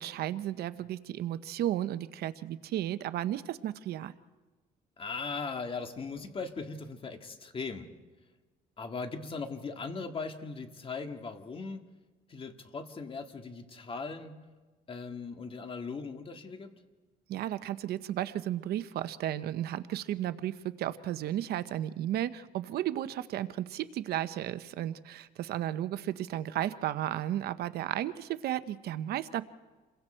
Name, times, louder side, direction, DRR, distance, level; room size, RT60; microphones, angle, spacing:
voice 1, 0.0-4.1 17.3-29.4, right 12 dB, 70° right, 13 dB, 0.8 m, -34 dB
voice 2, 5.0-7.9 8.8-11.9 12.3-14.3 14.9-16.8, left 4 dB, 30° left, 6 dB, 2.0 m, -39 dB
28.5 x 22.5 x 4.5 m, 1.3 s
cardioid pair, 110°, 17 cm